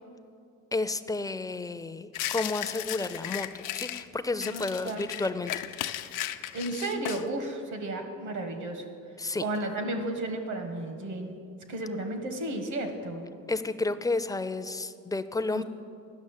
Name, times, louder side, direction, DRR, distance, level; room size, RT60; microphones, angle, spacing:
voice 1, 0.7-3.5 3.7-5.5 9.2-9.4 13.5-15.6, left 3 dB, 10° left, 12 dB, 0.4 m, -31 dB
sound 1, 2.1-4.0 4.4-7.3, left 13 dB, 85° left, 0.5 m, -35 dB
voice 2, 4.4-5.0 6.5-8.9 9.4-11.3 11.7-13.3 15.5-15.6, right 2 dB, 70° right, 6 dB, 1.4 m, -33 dB
10.5 x 6.2 x 7.4 m, 2.4 s
cardioid pair, 90°, 30 cm